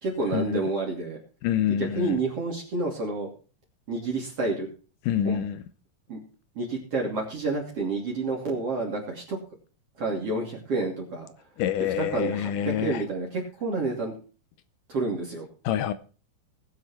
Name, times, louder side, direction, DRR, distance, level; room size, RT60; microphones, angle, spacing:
voice 1, 0.0-1.2 1.7-3.3 3.9-4.7 5.3-5.4 6.1-6.2 6.6-9.4 10.0-11.3 12.0-14.1 14.9-15.5, right 3 dB, 40° right, 3.5 m, -29 dB
voice 2, 1.4-2.2 5.1-5.6 11.6-13.0 15.7-15.9, left 10 dB, 75° left, 2.0 m, -26 dB
20.5 x 7.5 x 4.4 m
omnidirectional pair, 4.2 m